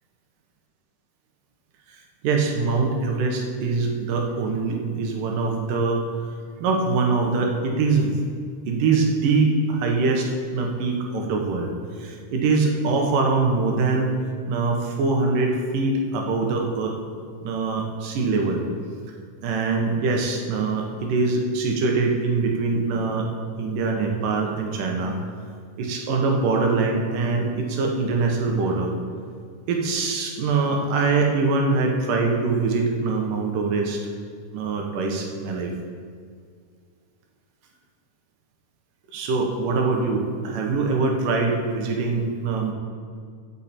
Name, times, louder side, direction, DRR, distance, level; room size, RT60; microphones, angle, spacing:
voice 1, 1.9-6.3 6.6-8.2 8.7-14.1 14.5-17.0 17.4-18.6 19.4-23.3 23.6-25.2 25.8-28.9 29.7-34.0 34.5-35.7 39.1-42.7, right 3 dB, 80° right, 1 dB, 2.9 m, -23 dB
15.5 x 6.9 x 4.3 m, 2.1 s
omnidirectional pair, 3.7 m